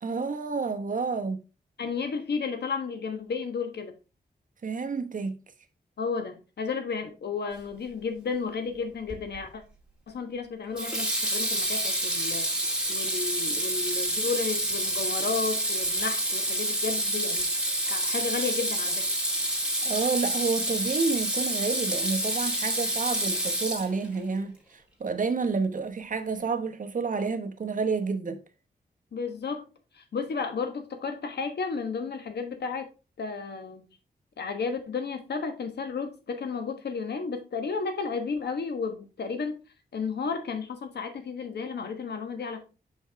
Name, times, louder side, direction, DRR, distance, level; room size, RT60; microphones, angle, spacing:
voice 1, 0.0-1.4 4.6-5.4 19.8-28.4, right 4 dB, 50° right, 1.0 m, -29 dB
voice 2, 1.8-3.9 6.0-9.6 10.1-12.5 12.9-17.5 17.8-19.1 29.1-29.7 29.9-32.9 33.2-33.9 34.4-39.6 39.9-42.6, left 5 dB, 75° left, 1.3 m, -33 dB
Water tap faucet / Sink (filling or washing), 9.1-9.4 10.7-24.2, right 1 dB, 5° right, 2.2 m, -28 dB
5.7 x 5.4 x 3.5 m
cardioid pair, 70°, 17 cm